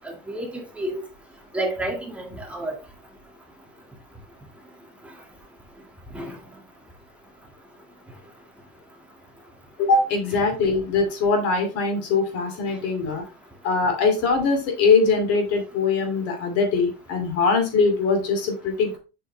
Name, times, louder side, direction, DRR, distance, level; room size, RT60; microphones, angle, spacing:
voice 1, 0.3-0.9 1.5-2.7 6.1-6.3, right 1 dB, 5° right, 1.9 m, -29 dB
voice 2, 9.8-13.2 13.6-19.0, left 4 dB, 50° left, 2.7 m, -22 dB
7.6 x 5.6 x 3.3 m
cardioid pair, 165°, 30 cm